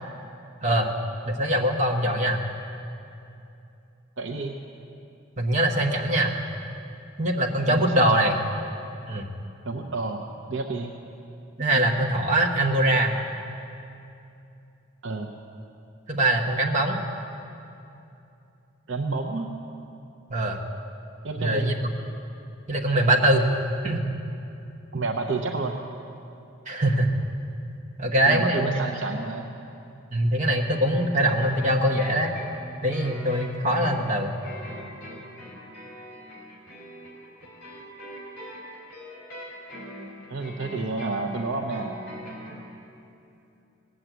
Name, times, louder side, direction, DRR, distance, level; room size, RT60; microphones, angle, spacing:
voice 1, 0.6-0.9 1.3-2.4 5.4-6.3 7.2-8.3 9.1-9.3 11.6-13.2 16.1-17.0 20.3-20.6 21.4-21.7 22.7-23.5 23.8-24.0 26.7-27.2 28.0-28.7 30.1-32.3 32.8-34.3, right 1 dB, 35° right, 1 dB, 1.1 m, -22 dB
voice 2, 4.2-4.6 7.7-8.3 9.6-10.9 15.0-15.3 18.9-19.5 21.2-21.7 24.9-25.8 28.3-29.5 40.3-41.9, right 3 dB, 60° right, 2 dB, 0.7 m, -30 dB
sound 1, 30.6-42.6, equal, 45° left, 3.8 m, -42 dB
18.5 x 7.5 x 8.1 m, 2.7 s
head